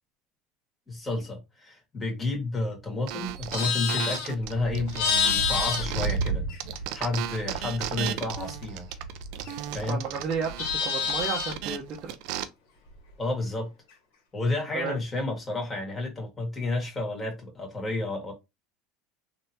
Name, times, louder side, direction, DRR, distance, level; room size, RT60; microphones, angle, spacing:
voice 1, 0.9-6.5 6.9-8.9 9.7-10.0 13.2-13.7 14.3-18.3, left 2 dB, 20° left, 1.8 m, -31 dB
sound 1, 3.1-6.3 6.6-12.4, right 12 dB, 70° right, 0.5 m, -35 dB
Livestock farm animals working animals, 3.3-7.0 7.3-9.8 10.1-11.7, left 4 dB, 80° left, 1.3 m, -29 dB
voice 2, 9.9-12.2 14.7-15.0, right 6 dB, 45° right, 0.8 m, -32 dB
3.4 x 2.9 x 2.8 m
supercardioid pair, 115°, 0 cm